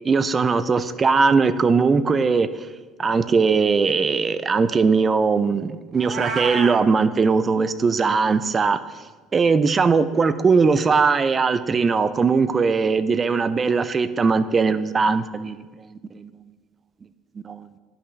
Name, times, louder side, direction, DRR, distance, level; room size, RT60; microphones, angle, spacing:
voice 1, 0.1-2.5 3.0-8.8 9.3-16.3 17.4-17.7, right 4 dB, 25° right, 13 dB, 0.4 m, -20 dB
Meow, 5.9-6.8, right 5 dB, 40° right, 0.9 m, -28 dB
10.5 x 5.7 x 3.2 m, 1.3 s
cardioid pair, 135°, 0 cm